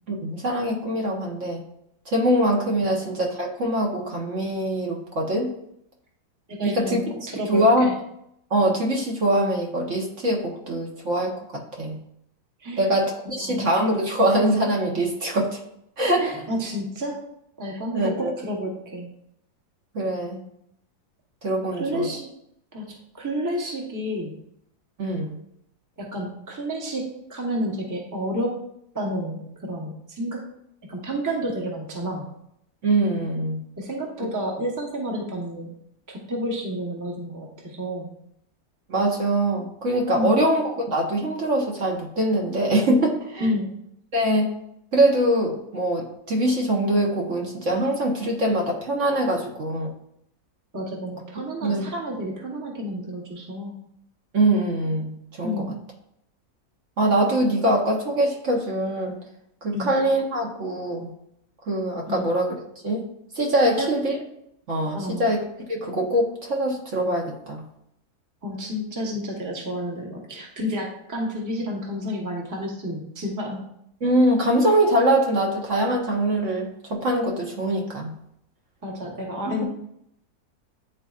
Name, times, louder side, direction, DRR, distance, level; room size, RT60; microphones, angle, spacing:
voice 1, 0.1-1.6 2.1-5.5 6.6-7.9 8.5-11.4 11.8-12.0 12.8-15.6 16.0-16.3 17.9-18.3 19.9-20.4 21.4-22.1 25.0-25.4 32.8-33.6 38.9-43.5 44.1-44.5 44.9-49.9 51.6-51.9 54.3-55.6 57.0-59.2 59.6-61.1 61.7-62.5 62.8-63.0 63.3-64.1 64.7-65.4 65.7-67.6 74.0-78.1, right 1 dB, 50° right, -1 dB, 1.3 m, -23 dB
voice 2, 6.5-7.9 12.6-12.9 13.4-13.7 16.2-17.2 17.6-19.1 21.7-22.3 22.7-24.3 26.0-28.6 28.9-30.4 30.9-32.3 33.8-35.8 36.1-38.1 40.1-40.4 43.4-43.7 49.4-49.5 50.7-53.8 55.4-55.7 59.7-59.9 62.1-62.3 63.8-63.9 64.9-65.3 68.4-73.7 78.8-79.6, equal, 15° right, -1 dB, 0.9 m, -30 dB
10.0 x 4.1 x 2.4 m, 0.75 s
omnidirectional pair, 1.7 m